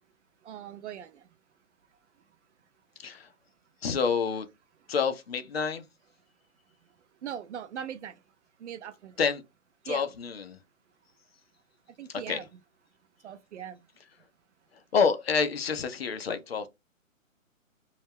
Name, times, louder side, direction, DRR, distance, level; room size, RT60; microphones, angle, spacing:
voice 1, 0.4-1.2 7.2-8.2 8.6-9.1 9.9-10.0 12.0-12.4 13.2-13.8, right 9 dB, 60° right, 0.5 m, -39 dB
voice 2, 3.8-4.5 4.9-5.8 9.2-9.4 9.8-10.6 12.1-12.4 14.9-16.7, left 5 dB, 50° left, 0.4 m, -28 dB
2.3 x 2.0 x 3.3 m
hypercardioid pair, 140°, 41 cm